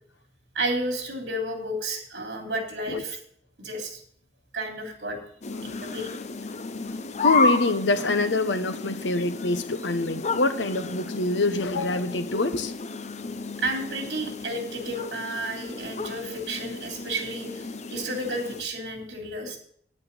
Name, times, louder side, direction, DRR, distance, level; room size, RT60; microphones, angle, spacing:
voice 1, 0.5-3.2 3.6-4.0 4.5-5.2 5.6-6.1 13.6-19.6, right 1 dB, 65° right, 3 dB, 3.1 m, -32 dB
sound 1, 5.4-18.6, left 4 dB, 40° left, 0.7 m, -32 dB
voice 2, 7.2-12.8, left 2 dB, 80° left, 11 dB, 1.0 m, -25 dB
9.3 x 8.5 x 6.8 m, 0.64 s
head